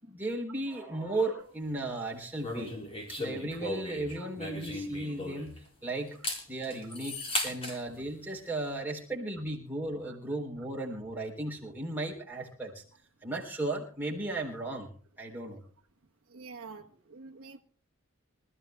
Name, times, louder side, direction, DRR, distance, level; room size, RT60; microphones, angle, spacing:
voice 1, 0.0-2.7 3.2-6.2 6.5-7.2 7.4-12.8 13.2-14.9 15.2-15.6, right 2 dB, 10° right, 3.8 m, -35 dB
sound 1, 2.4-5.7 6.1-7.8, left 1 dB, 25° left, 4.5 m, -36 dB
voice 2, 16.3-17.6, right 4 dB, 75° right, 1.2 m, -47 dB
25.5 x 14.0 x 2.3 m
head